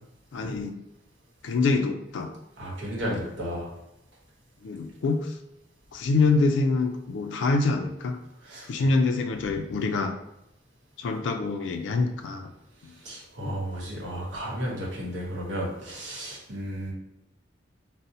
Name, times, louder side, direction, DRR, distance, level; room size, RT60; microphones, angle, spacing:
voice 1, 0.3-0.8 1.4-2.3 4.6-5.3 5.9-8.2 8.7-10.2 11.0-12.5 12.8-12.9, left 3 dB, 80° left, 5 dB, 0.4 m, -25 dB
voice 2, 2.6-3.7 8.4-8.8 13.0-16.9, equal, 80° right, -3 dB, 0.9 m, -33 dB
4.0 x 2.0 x 2.6 m, 0.88 s
head